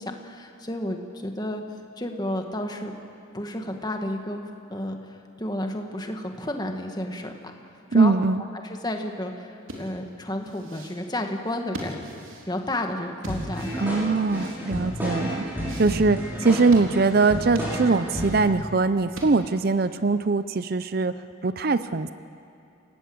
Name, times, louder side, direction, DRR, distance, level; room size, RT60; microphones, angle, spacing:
voice 1, 0.0-1.6 2.0-2.9 3.3-4.4 4.7-7.3 7.9-8.1 8.6-12.2 12.5-13.9 14.8-14.9, left 1 dB, 20° left, 4 dB, 1.7 m, -31 dB
voice 2, 7.9-8.4 13.8-15.4 15.8-21.1 21.4-22.1, right 3 dB, 50° right, 12 dB, 0.6 m, -22 dB
sound 1, 9.6-19.7, right 1 dB, 85° right, 3.7 m, -42 dB
sound 2, 13.3-18.5, equal, 10° right, 6.3 m, -31 dB
28.5 x 18.0 x 7.9 m, 2.6 s
head